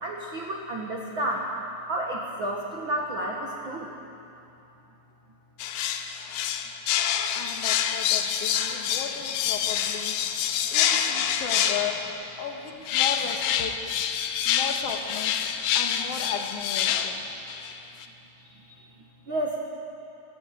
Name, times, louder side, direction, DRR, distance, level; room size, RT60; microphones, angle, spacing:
voice 1, 0.0-1.5 1.9-4.0 18.7-18.9 19.3-19.6, right 1 dB, 75° right, -1 dB, 1.1 m, -31 dB
sound 1, 5.6-12.2 12.9-17.7 18.0-18.1, left 9 dB, 75° left, 2.4 m, -27 dB
voice 2, 7.3-10.2 10.7-12.0 12.4-13.8 14.4-15.5 15.7-17.2, left 7 dB, 55° left, 3 dB, 1.7 m, -35 dB
22.5 x 14.5 x 9.2 m, 2.9 s
omnidirectional pair, 4.9 m